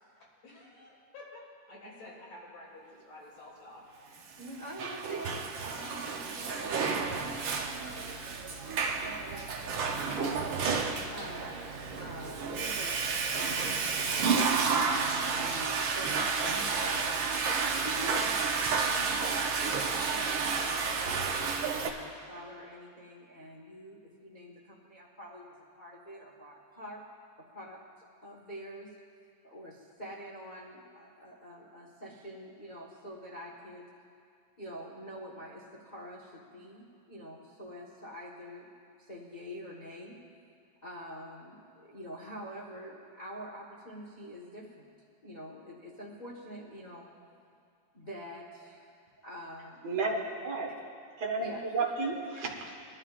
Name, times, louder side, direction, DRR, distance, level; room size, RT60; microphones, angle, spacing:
voice 1, 0.4-3.8, left 2 dB, 65° left, -5 dB, 4.0 m, -50 dB
voice 2, 4.4-10.0 11.1-13.0 13.3-13.8 14.1-17.1 17.8-18.3 19.2-27.0 27.4-27.8 28.2-29.0 29.4-33.9 34.6-38.7 39.0-40.2 40.8-44.9 45.2-47.1 47.9-48.9 49.2-49.9 51.4-51.6 52.3-52.4, equal, 85° left, -3 dB, 0.4 m, -46 dB
Water / Toilet flush, 4.4-21.9, right 5 dB, 80° right, 1.1 m, -31 dB
voice 3, 49.8-50.7 51.2-52.7, right 3 dB, 35° right, -1 dB, 1.1 m, -32 dB
22.5 x 11.5 x 2.5 m, 2.3 s
omnidirectional pair, 3.3 m